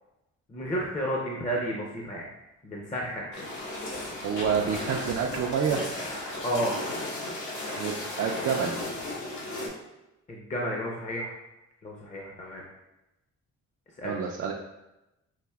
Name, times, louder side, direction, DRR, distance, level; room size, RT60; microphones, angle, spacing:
voice 1, 0.5-2.3 2.6-3.5 6.4-6.8 10.3-11.3 11.8-12.6 14.0-14.2, equal, 25° left, -2 dB, 0.6 m, -32 dB
sound 1, 3.3-9.7, left 1 dB, 75° left, 1.2 m, -35 dB
voice 2, 4.2-5.9 7.8-8.8 14.0-14.5, right 6 dB, 55° right, 0 dB, 0.5 m, -28 dB
5.7 x 2.5 x 2.3 m, 0.95 s
cardioid pair, 90°, 30 cm